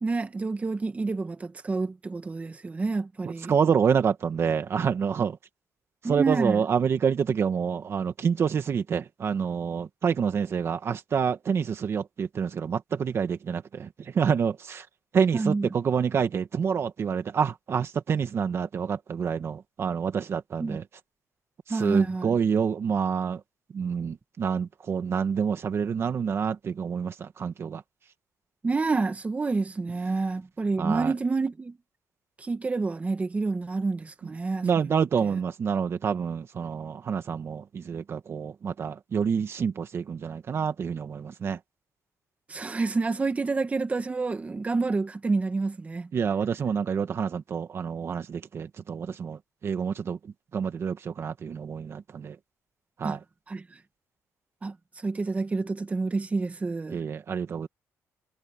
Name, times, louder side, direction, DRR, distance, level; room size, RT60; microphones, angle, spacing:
voice 1, 0.0-3.5 6.0-6.6 15.3-15.7 20.6-20.8 21.7-22.3 28.6-31.8 32.4-34.7 42.5-46.1 53.0-53.2 53.5-53.8 54.6-57.0, right 3 dB, 25° right, 1.9 m, -28 dB
voice 2, 3.2-5.4 6.0-14.9 15.1-20.8 21.7-23.4 23.7-27.8 30.8-31.1 34.2-34.3 34.6-41.6 46.1-52.4 53.0-53.2 56.9-57.7, right 6 dB, 45° right, 1.8 m, -27 dB
cardioid pair, 115°, 6 cm